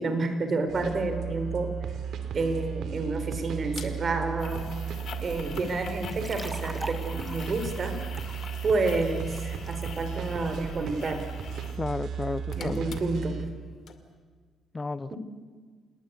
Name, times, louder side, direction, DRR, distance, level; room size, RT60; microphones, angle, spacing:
voice 1, 0.0-2.0 2.3-4.6 5.2-8.0 8.6-11.3 12.5-13.4 15.1-15.2, right 3 dB, 45° right, 8 dB, 4.3 m, -29 dB
sound 1, 0.7-13.5, right 7 dB, 70° right, 2.9 m, -35 dB
sound 2, 3.7-3.9 4.4-11.8 12.1-13.6 13.9-14.0, left 7 dB, 60° left, 2.4 m, -45 dB
sound 3, 6.0-9.9, right 1 dB, 10° right, 1.7 m, -43 dB
voice 2, 11.8-13.0 14.7-15.1, left 3 dB, 25° left, 15 dB, 0.7 m, -32 dB
27.5 x 20.0 x 8.3 m, 1.5 s
cardioid pair, 90°, 0 cm